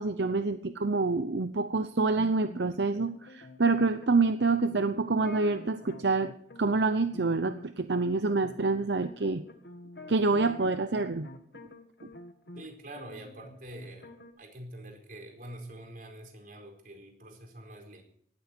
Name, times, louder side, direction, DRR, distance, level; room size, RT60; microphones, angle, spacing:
voice 1, 0.0-6.3 6.6-9.4 10.1-11.3, right 3 dB, 75° right, 10 dB, 0.8 m, -27 dB
sound 1, 2.2-12.7 13.0-14.3, left 2 dB, 70° left, 1.9 m, -48 dB
voice 2, 12.5-18.0, right 1 dB, 50° right, 3 dB, 4.6 m, -46 dB
18.0 x 13.5 x 4.6 m, 0.64 s
head